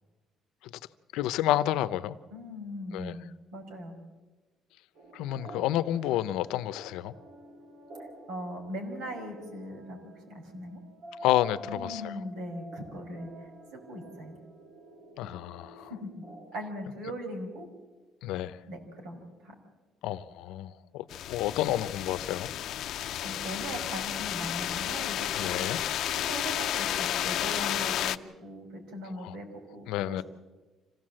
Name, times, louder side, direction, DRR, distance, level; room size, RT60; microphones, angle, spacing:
voice 1, 1.1-2.2 2.9-3.1 5.1-7.1 11.2-12.1 15.2-15.9 18.2-18.6 20.0-22.5 25.4-25.8 29.2-29.4 29.9-30.2, left 13 dB, 90° left, 0.8 m, -30 dB
voice 2, 2.3-3.2 3.5-4.0 8.3-10.0 10.3-10.8 11.6-14.4 15.8-16.2 16.5-17.7 18.7-19.5 23.2-25.7 26.1-30.2, equal, 85° right, 5.3 m, -40 dB
sound 1, 4.9-16.7, right 1 dB, 55° right, 5.5 m, -49 dB
sound 2, 21.1-28.2, left 12 dB, 55° left, 0.6 m, -32 dB
26.0 x 16.5 x 7.7 m
cardioid pair, 180°, 0 cm